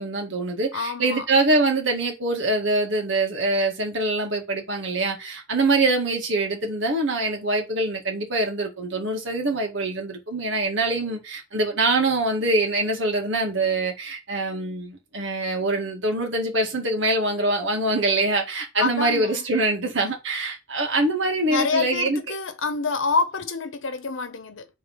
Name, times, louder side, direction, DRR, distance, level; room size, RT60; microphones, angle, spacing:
voice 1, 0.0-22.2, right 2 dB, 65° right, 1.9 m, -24 dB
voice 2, 0.7-1.3 18.8-19.4 21.5-24.7, left 4 dB, 75° left, 1.0 m, -27 dB
5.2 x 3.6 x 5.6 m
head